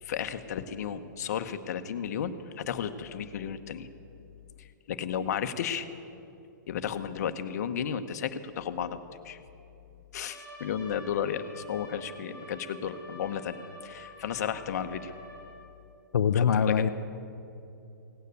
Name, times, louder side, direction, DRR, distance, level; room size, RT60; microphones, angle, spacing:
voice 1, 0.0-3.9 4.6-5.9 6.7-9.0 9.2-9.4 10.1-15.1 16.3-16.9, left 8 dB, 55° left, 9 dB, 0.9 m, -33 dB
Trumpet, 10.3-15.6, left 1 dB, 15° right, 3.0 m, -48 dB
voice 2, 16.1-16.9, left 7 dB, 85° left, 8 dB, 0.6 m, -23 dB
17.0 x 9.2 x 8.3 m, 2.8 s
hypercardioid pair, 150°, 11 cm